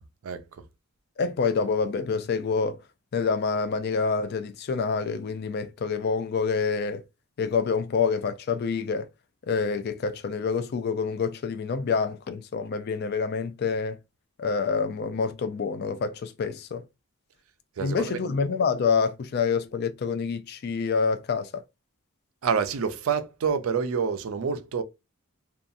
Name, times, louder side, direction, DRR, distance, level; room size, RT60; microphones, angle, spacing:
voice 1, 0.2-0.6 17.8-18.4 22.4-24.8, right 6 dB, 70° right, 0.4 m, -28 dB
voice 2, 1.2-2.8 3.1-7.0 7.4-9.1 9.4-14.0 14.4-16.9 17.8-21.6, left 5 dB, 45° left, 0.3 m, -27 dB
2.7 x 2.3 x 2.5 m
head